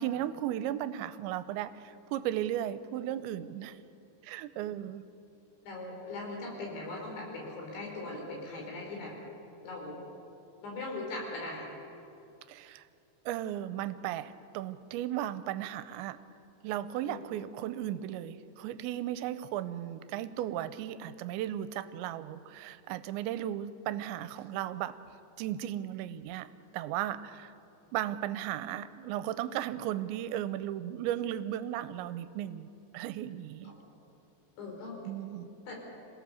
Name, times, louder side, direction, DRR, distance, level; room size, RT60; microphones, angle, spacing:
voice 1, 0.0-3.8 4.2-5.0 12.5-12.9 13.3-16.2 16.6-25.0 25.4-26.5 26.7-27.5 27.9-33.7 35.1-35.5, right 12 dB, 85° right, 14 dB, 3.0 m, -35 dB
voice 2, 5.6-9.1 9.6-10.0 10.6-11.6 17.0-17.2 34.6-35.0 35.7-35.8, left 2 dB, 80° left, -1 dB, 6.8 m, -39 dB
27.0 x 17.0 x 6.9 m, 2.7 s
omnidirectional pair, 5.1 m